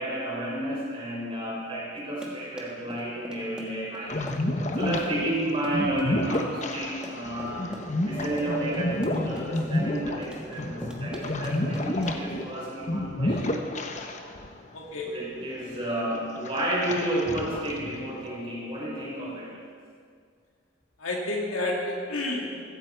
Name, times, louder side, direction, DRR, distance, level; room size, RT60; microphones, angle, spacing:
voice 1, 0.0-4.2 4.8-7.6 8.0-13.6 15.0-19.5, right 1 dB, 25° right, -5 dB, 4.7 m, -31 dB
Run, 2.0-12.4, equal, 5° right, 1.4 m, -43 dB
sound 1, 4.1-14.5 14.8-14.9 15.5-15.9 16.4-18.2, left 1 dB, 35° left, 1.0 m, -30 dB
voice 2, 14.7-15.1 21.0-22.6, left 2 dB, 90° left, -1 dB, 2.4 m, -30 dB
15.5 x 15.5 x 4.5 m, 2.1 s
head